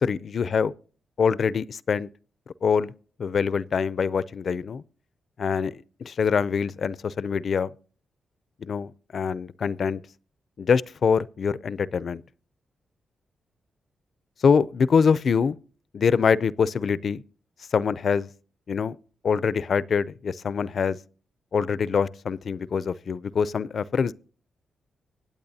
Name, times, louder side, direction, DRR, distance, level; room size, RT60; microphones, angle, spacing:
voice 1, 0.0-0.7 1.2-2.1 2.6-2.9 3.2-4.8 5.4-5.7 6.0-7.7 8.6-10.0 10.6-12.2 14.4-15.6 15.9-17.2 17.7-18.3 18.7-19.0 19.2-21.0 21.5-24.1, left 6 dB, 55° left, 0.5 m, -24 dB
25.0 x 8.6 x 2.7 m
cardioid pair, 90°, 0 cm